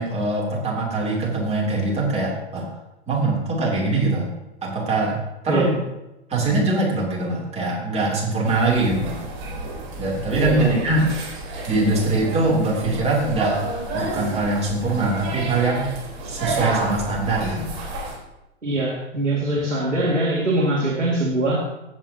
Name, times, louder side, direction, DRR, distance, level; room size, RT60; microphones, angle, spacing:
voice 1, 0.0-2.6 3.1-4.3 4.6-5.2 5.4-5.8 6.3-9.2 10.0-11.1 11.7-13.6 13.9-15.9 16.2-17.8, right 2 dB, 15° right, -3 dB, 2.9 m, -22 dB
sound 1, 8.4-18.2, right 2 dB, 40° right, 3.9 m, -31 dB
voice 2, 10.4-10.9 18.6-21.6, right 1 dB, 90° right, -5 dB, 2.1 m, -22 dB
16.0 x 7.7 x 2.8 m, 0.93 s
figure-of-eight pair, 105°, 36 cm